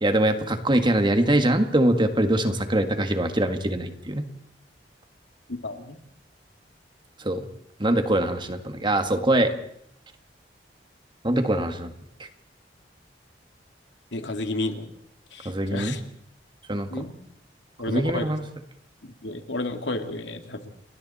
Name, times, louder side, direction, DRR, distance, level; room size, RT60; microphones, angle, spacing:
voice 1, 0.0-4.3 7.2-7.5 7.8-9.5 11.2-11.9 12.2-12.3 15.5-16.0 16.7-17.0 17.9-18.5, right 1 dB, 25° right, 7 dB, 1.9 m, -23 dB
voice 2, 5.5-6.0 14.1-14.9 15.3-16.0 16.9-17.1 17.8-18.3 19.0-20.6, left 2 dB, 80° left, 6 dB, 2.4 m, -31 dB
29.5 x 20.5 x 4.3 m, 0.70 s
head